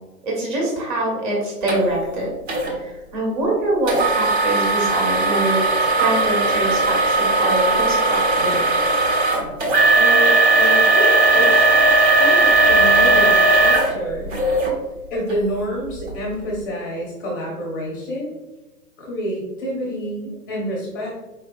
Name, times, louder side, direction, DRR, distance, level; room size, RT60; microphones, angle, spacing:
voice 1, 0.2-2.3 2.7-5.6 6.0-8.6, right 1 dB, 30° right, -3 dB, 1.4 m, -24 dB
sound 1, 1.7-1.8 2.5-2.7 3.9-14.7 15.3-15.4 16.0-16.1, right 2 dB, 45° right, 1.3 m, -17 dB
voice 2, 9.9-11.7 12.2-14.4 15.1-18.4 19.0-21.1, equal, 15° left, -3 dB, 0.5 m, -28 dB
4.5 x 3.0 x 2.5 m, 1.1 s
hypercardioid pair, 140°, 48 cm